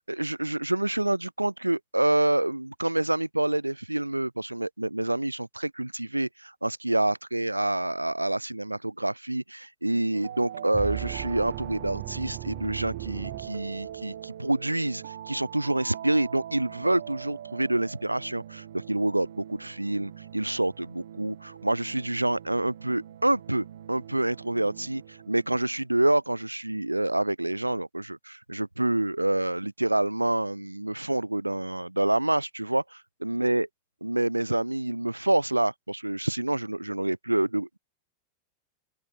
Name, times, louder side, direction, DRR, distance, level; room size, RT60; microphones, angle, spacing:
voice 1, 0.1-33.7 34.0-37.8, right 1 dB, 85° right, 0.3 m, -27 dB
sound 1, 10.1-25.8, right 10 dB, 65° right, 4.0 m, -43 dB
sound 2, 10.7-14.2, right 31 dB, 45° right, 1.1 m, -37 dB
open air
figure-of-eight pair, 90°, 0 cm